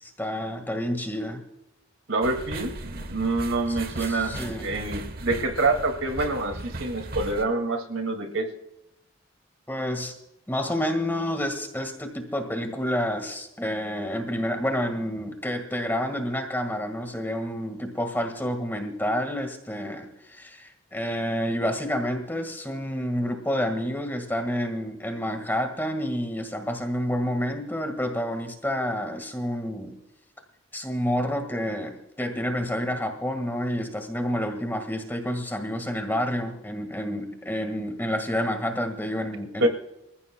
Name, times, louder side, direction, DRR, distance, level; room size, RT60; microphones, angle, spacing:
voice 1, 0.0-1.4 3.7-4.7 9.7-10.1 10.5-30.0 30.7-39.7, equal, 10° left, 5 dB, 1.7 m, -29 dB
voice 2, 2.1-8.5 39.6-39.7, right 2 dB, 75° right, 5 dB, 2.2 m, -26 dB
sound 1, 2.2-7.4, right 2 dB, 45° right, 1.1 m, -37 dB
26.5 x 14.5 x 2.3 m, 0.86 s
head